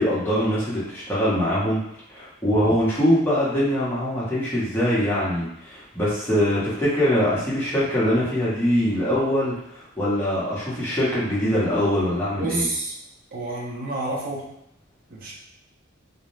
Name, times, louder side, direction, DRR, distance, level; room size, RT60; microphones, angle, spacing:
voice 1, 0.0-1.8 2.1-12.7, equal, 10° left, -9 dB, 0.8 m, -23 dB
voice 2, 12.4-12.9 13.3-14.5 15.1-15.3, right 2 dB, 45° right, -3 dB, 0.6 m, -29 dB
2.5 x 2.1 x 3.0 m, 0.78 s
head